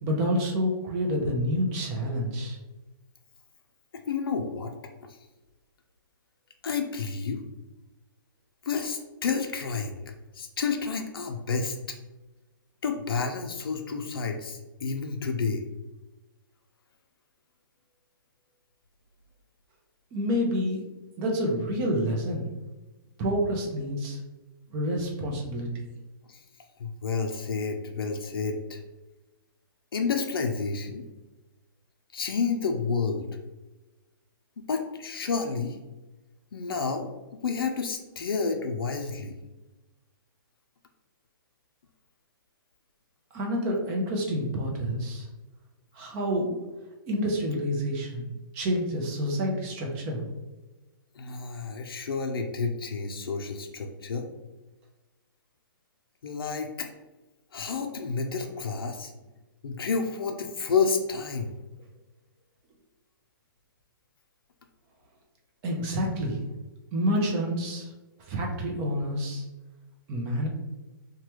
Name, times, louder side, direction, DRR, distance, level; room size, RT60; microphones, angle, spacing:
voice 1, 0.0-2.6 20.1-20.8 21.2-22.5 23.2-24.2 24.7-25.9 43.3-45.3 45.9-46.6 47.1-50.3 65.6-66.4 66.9-67.9 68.3-69.4 70.1-70.5, equal, 25° right, 0 dB, 0.6 m, -28 dB
voice 2, 4.1-4.7 5.0-5.2 6.6-7.4 8.6-12.0 12.8-15.7 26.3-26.4 26.8-28.8 29.9-31.1 32.1-33.3 34.6-35.8 36.5-39.4 51.1-54.3 56.2-56.9 57.5-59.1 59.6-61.5, left 5 dB, 90° left, 4 dB, 0.4 m, -30 dB
3.1 x 2.2 x 2.9 m, 1.1 s
hypercardioid pair, 150°, 12 cm